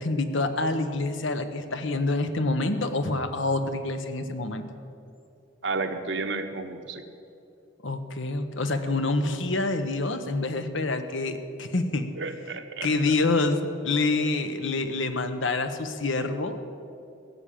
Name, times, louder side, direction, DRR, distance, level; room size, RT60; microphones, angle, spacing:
voice 1, 0.0-4.6 7.8-12.1 12.8-16.6, left 2 dB, 85° left, 8 dB, 1.1 m, -27 dB
voice 2, 5.6-7.0 12.2-12.9, right 3 dB, 65° right, 7 dB, 1.0 m, -31 dB
16.5 x 7.6 x 8.5 m, 2.5 s
head